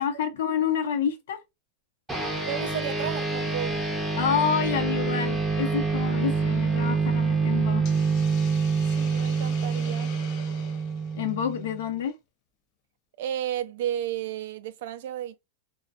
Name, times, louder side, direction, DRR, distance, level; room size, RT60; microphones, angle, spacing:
voice 1, 0.0-1.4 4.1-7.8 11.1-12.1, left 8 dB, 80° left, 0.7 m, -28 dB
sound 1, 2.1-11.8, right 4 dB, 5° right, 0.6 m, -26 dB
voice 2, 2.4-4.0 8.9-10.1 13.2-15.4, right 11 dB, 60° right, 0.3 m, -33 dB
Hiss, 7.8-12.1, left 7 dB, 40° left, 0.5 m, -45 dB
2.4 x 2.2 x 2.3 m
supercardioid pair, 165°, 0 cm